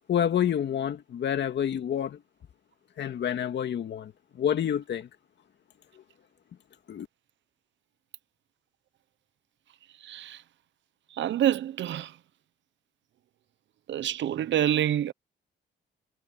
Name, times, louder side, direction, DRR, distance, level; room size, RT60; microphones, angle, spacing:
voice 1, 0.1-2.2 3.0-4.1 4.4-5.1 6.9-7.1, left 9 dB, 60° left, 2.3 m, -28 dB
voice 2, 10.0-10.4 11.2-12.1 13.9-15.1, right 11 dB, 70° right, 0.9 m, -27 dB
cardioid pair, 90°, 20 cm